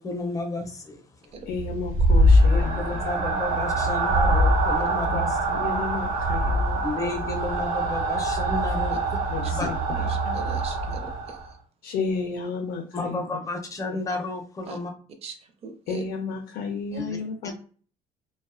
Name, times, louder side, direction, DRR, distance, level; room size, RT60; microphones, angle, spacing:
voice 1, 0.0-1.3 2.4-5.5 6.8-9.2 9.5-9.7 12.9-14.9 17.0-17.2 17.4-17.5, left 2 dB, 20° left, 4 dB, 0.5 m, -32 dB
voice 2, 1.5-3.0 5.1-7.1 9.3-10.3 11.8-13.2 15.9-17.5, left 5 dB, 85° left, 4 dB, 0.5 m, -32 dB
sound 1, 1.5-11.5, right 1 dB, 75° right, 0.9 m, -23 dB
voice 3, 10.1-11.4 14.7-14.8 15.2-16.0 16.9-17.0, right 5 dB, 45° right, 7 dB, 0.5 m, -41 dB
2.4 x 2.2 x 2.4 m, 0.42 s
cardioid pair, 140°, 15 cm